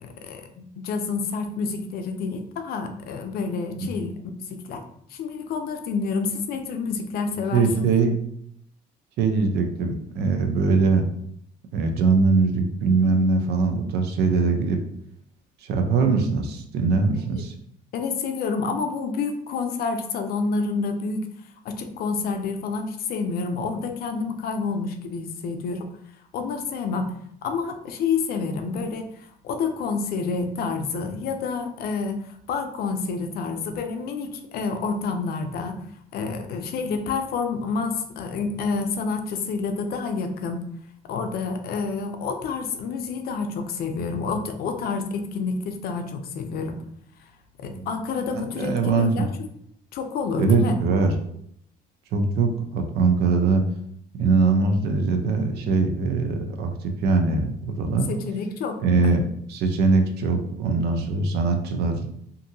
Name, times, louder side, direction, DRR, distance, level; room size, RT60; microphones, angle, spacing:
voice 1, 0.0-4.1 4.5-4.8 5.1-7.9 17.9-21.2 21.6-25.9 26.3-27.1 27.4-35.8 36.1-40.6 41.1-46.8 47.6-49.3 49.9-50.8 58.1-58.8, left 4 dB, 65° left, 6 dB, 0.5 m, -28 dB
voice 2, 7.3-8.2 9.2-11.0 11.7-14.8 15.6-17.5 47.6-47.9 48.3-49.3 50.4-51.2 52.1-53.6 54.2-58.1 58.8-59.2 59.5-62.1, right 4 dB, 75° right, 5 dB, 0.5 m, -22 dB
2.6 x 2.6 x 2.6 m, 0.69 s
cardioid pair, 110°, 17 cm